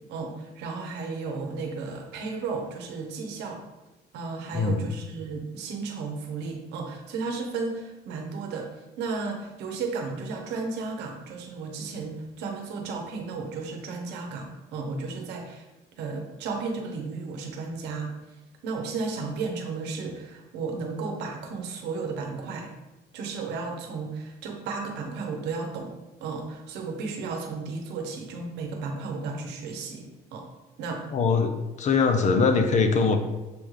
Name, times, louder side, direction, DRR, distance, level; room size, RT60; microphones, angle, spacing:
voice 1, 0.1-3.6 4.1-8.7 9.0-15.7 16.0-18.1 18.6-22.7 23.1-25.9 26.2-30.5 30.8-31.0, right 4 dB, 90° right, 3 dB, 0.8 m, -34 dB
voice 2, 4.5-4.8 31.1-33.2, left 4 dB, 45° left, 7 dB, 0.5 m, -22 dB
6.9 x 2.4 x 3.2 m, 1.1 s
cardioid pair, 110°, 17 cm